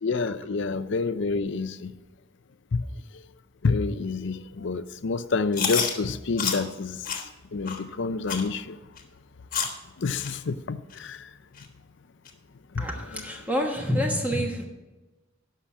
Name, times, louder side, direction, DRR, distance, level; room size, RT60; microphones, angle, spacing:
voice 1, 0.0-1.9 2.7-2.9 3.6-7.2 7.5-8.8 10.0-11.3, left 4 dB, 60° left, 13 dB, 0.5 m, -28 dB
Chewing mastication, 5.5-5.9 6.4-6.6 7.0-7.2 7.6-7.8 8.3-8.5 9.0-9.1 9.5-9.8 10.2-10.3 10.9-11.0 11.6-11.7 12.2-12.3, left 7 dB, 40° left, 1.4 m, -28 dB
voice 2, 12.8-14.6, equal, 10° right, 1 dB, 1.2 m, -27 dB
12.0 x 5.8 x 6.1 m, 1.1 s
head